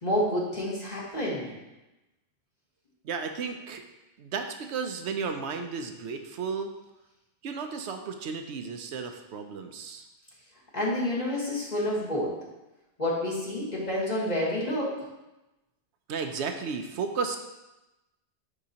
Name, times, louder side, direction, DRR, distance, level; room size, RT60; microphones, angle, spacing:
voice 1, 0.0-1.5 10.7-12.4 13.0-15.0, left 1 dB, 40° left, -5 dB, 1.6 m, -29 dB
voice 2, 3.0-3.8 4.2-6.7 7.4-10.1 16.1-17.4, right 5 dB, 80° right, 6 dB, 0.9 m, -33 dB
9.7 x 3.9 x 2.8 m, 1.0 s
omnidirectional pair, 1.1 m